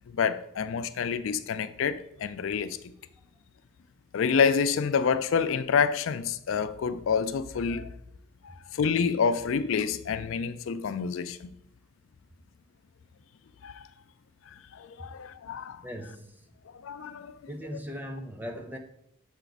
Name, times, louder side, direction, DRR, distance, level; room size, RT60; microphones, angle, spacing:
voice 1, 0.1-2.8 4.1-7.9 8.4-11.5 13.6-13.8 14.7-15.8 16.8-17.3, left 6 dB, 75° left, 0.4 m, -28 dB
voice 2, 15.8-16.5 17.5-18.8, equal, 10° right, 0.6 m, -39 dB
6.8 x 4.6 x 4.0 m
head